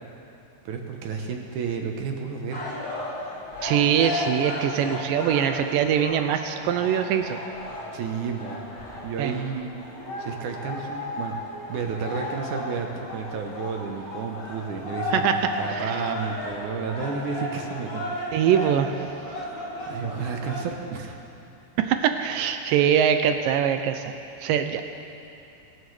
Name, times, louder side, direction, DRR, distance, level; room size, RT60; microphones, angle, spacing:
voice 1, 0.7-2.7 7.9-8.6 9.0-9.7 10.2-11.4 11.7-18.4 19.9-21.2, right 5 dB, 70° right, 3 dB, 2.0 m, -31 dB
sound 1, 2.5-20.7, left 1 dB, 30° left, 2.4 m, -34 dB
voice 2, 3.6-7.4 9.2-9.3 15.1-15.4 15.7-15.9 18.3-18.9 21.8-24.0 24.4-24.8, right 9 dB, 85° right, 8 dB, 2.0 m, -23 dB
25.0 x 13.0 x 3.3 m, 2.8 s
omnidirectional pair, 4.5 m